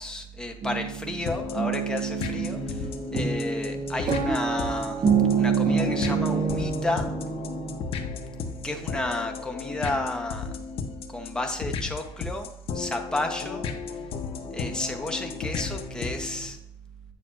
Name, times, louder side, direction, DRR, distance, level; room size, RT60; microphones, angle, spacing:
voice 1, 0.0-2.9 3.1-5.0 5.4-7.1 8.6-10.5 11.1-12.5 12.7-13.7 14.5-16.6, left 2 dB, 10° left, 3 dB, 0.9 m, -32 dB
sound 1, 0.6-7.8, right 6 dB, 50° right, 0.9 m, -27 dB
sound 2, 1.3-16.5, left 5 dB, 70° left, 0.8 m, -34 dB
8.3 x 6.7 x 2.5 m, 0.80 s
cardioid pair, 135°, 10 cm